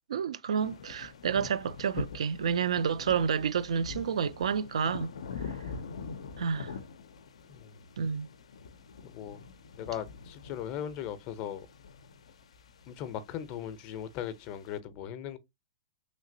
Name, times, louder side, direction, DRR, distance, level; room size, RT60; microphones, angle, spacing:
voice 1, 0.1-5.1 6.4-6.7 8.0-8.3, right 7 dB, 85° right, 0.3 m, -30 dB
sound 1, 0.6-14.8, left 5 dB, 90° left, 0.4 m, -45 dB
voice 2, 7.5-7.8 9.0-9.4 9.8-11.7 12.9-15.4, left 10 dB, 35° left, 0.5 m, -38 dB
3.1 x 2.8 x 2.6 m
hypercardioid pair, 145°, 3 cm